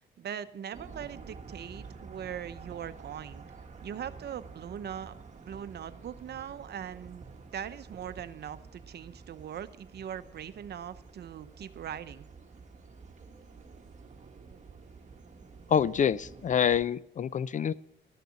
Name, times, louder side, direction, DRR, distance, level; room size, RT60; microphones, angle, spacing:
voice 1, 0.2-3.4 3.8-7.2 7.5-12.2, right 9 dB, 55° right, 12 dB, 0.8 m, -41 dB
sound 1, 0.7-16.8, right 5 dB, 35° right, 1.5 m, -49 dB
voice 2, 15.7-17.7, left 8 dB, 40° left, 19 dB, 0.4 m, -26 dB
13.0 x 6.7 x 7.5 m, 0.76 s
cardioid pair, 90°, 20 cm